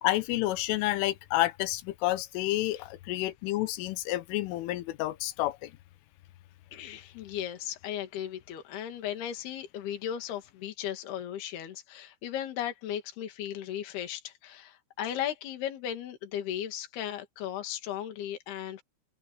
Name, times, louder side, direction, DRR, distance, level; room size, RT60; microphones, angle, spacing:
voice 1, 0.0-5.7, left 16 dB, 85° left, 3.5 m, -29 dB
voice 2, 6.7-18.8, left 10 dB, 60° left, 4.1 m, -36 dB
omnidirectional pair, 5.6 m